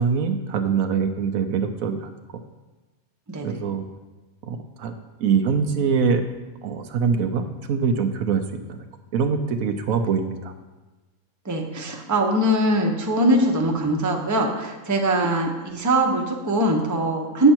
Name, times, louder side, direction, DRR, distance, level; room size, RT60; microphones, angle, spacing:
voice 1, 0.0-2.4 3.4-3.8 4.4-4.9 5.2-6.2 6.6-8.4 8.7-8.9 9.1-10.5, right 6 dB, 75° right, 7 dB, 1.1 m, -23 dB
voice 2, 11.4-17.5, right 1 dB, 15° right, 1 dB, 0.8 m, -22 dB
8.9 x 6.9 x 4.4 m, 1.2 s
omnidirectional pair, 1.5 m